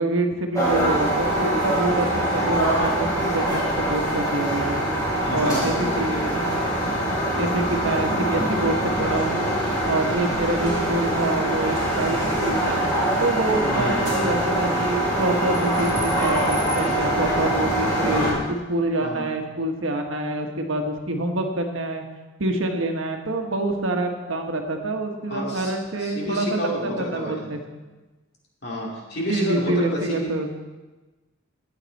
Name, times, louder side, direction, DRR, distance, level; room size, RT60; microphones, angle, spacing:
voice 1, 0.0-4.8 5.3-6.5 7.4-9.5 9.8-12.8 13.2-22.0 22.4-27.6 29.2-30.5, right 2 dB, 80° right, 3 dB, 1.3 m, -26 dB
sound 1, 0.5-18.3, right 1 dB, 15° left, 2.9 m, -23 dB
voice 2, 5.2-6.5 13.6-14.0 19.0-19.3 25.3-25.7 26.0-27.5 28.6-30.3, equal, 55° left, -3 dB, 2.8 m, -30 dB
13.0 x 8.9 x 4.1 m, 1.2 s
head